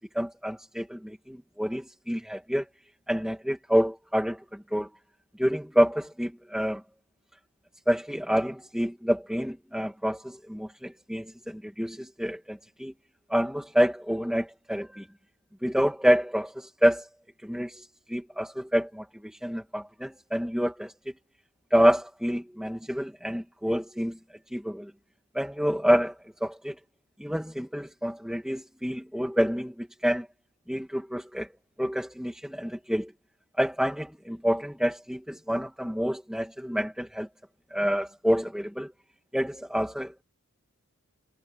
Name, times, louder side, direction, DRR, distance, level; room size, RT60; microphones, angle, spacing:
voice 1, 0.1-2.6 3.1-4.9 5.4-6.8 7.9-12.9 13.3-15.1 15.6-17.1 17.4-20.9 21.7-24.2 24.5-24.9 25.3-26.8 27.2-30.3 30.7-31.5 31.8-33.1 33.6-37.3 37.7-38.9 39.3-40.2, equal, 5° right, 2.5 m, -28 dB
head